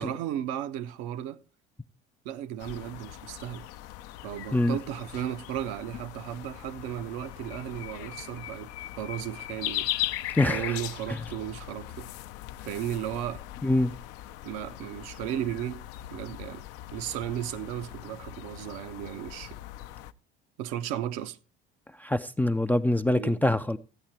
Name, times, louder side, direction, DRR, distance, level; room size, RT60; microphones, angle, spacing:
voice 1, 0.0-1.4 2.2-3.7 4.2-10.1 10.4-12.1 12.6-13.4 14.4-15.9 16.1-16.6 16.9-19.6 20.6-21.4 23.1-23.4, right 11 dB, 60° right, 0.8 m, -35 dB
sound 1, 2.6-20.1, left 14 dB, 55° left, 0.6 m, -39 dB
voice 2, 10.3-10.8 13.6-13.9 22.0-23.8, left 1 dB, 5° left, 0.4 m, -24 dB
13.0 x 8.7 x 4.4 m
figure-of-eight pair, 65°, 29 cm